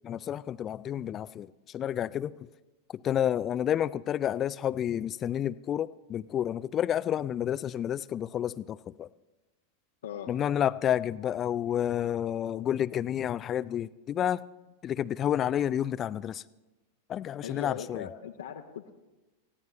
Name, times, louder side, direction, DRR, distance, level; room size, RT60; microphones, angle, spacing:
voice 1, 0.0-2.3 3.0-9.1 10.3-14.4 14.8-16.4 17.1-18.1, left 10 dB, 30° left, 19 dB, 0.4 m, -30 dB
voice 2, 10.0-10.3 17.4-18.9, left 9 dB, 60° left, 2 dB, 0.9 m, -39 dB
19.5 x 15.5 x 3.2 m, 1.1 s
figure-of-eight pair, 90°, 0 cm